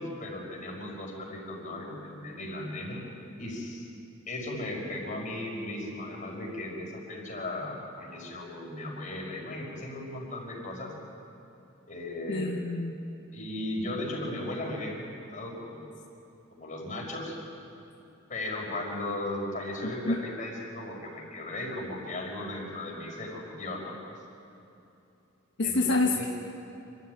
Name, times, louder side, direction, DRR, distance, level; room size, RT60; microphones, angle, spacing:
voice 1, 0.0-3.0 3.4-3.9 4.3-10.9 11.9-12.5 13.3-15.9 16.5-17.3 18.3-23.9 25.6-26.3, left 1 dB, 40° left, -1 dB, 5.5 m, -36 dB
voice 2, 12.3-13.0 20.1-20.2 25.6-26.2, left 2 dB, 60° left, 1 dB, 1.2 m, -27 dB
28.0 x 13.5 x 9.5 m, 2.8 s
head